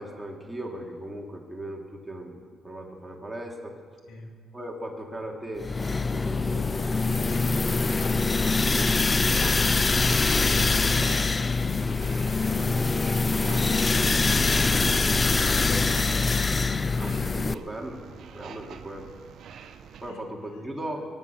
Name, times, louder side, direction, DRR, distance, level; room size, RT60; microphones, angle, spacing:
voice 1, 0.0-3.8 4.5-7.7 8.9-9.7 10.4-11.2 12.5-15.3 17.0-18.0 18.3-19.1 20.0-21.1, right 1 dB, 10° right, 0 dB, 2.6 m, -39 dB
sound 1, 5.6-17.5, left 3 dB, 25° left, 0.4 m, -24 dB
sound 2, 9.9-20.1, right 7 dB, 70° right, 1.0 m, -45 dB
voice 2, 15.2-16.4 20.1-20.6 20.9-21.0, left 2 dB, 90° left, 1 dB, 2.5 m, -42 dB
22.5 x 9.7 x 6.1 m, 2.2 s
cardioid pair, 90°, 0 cm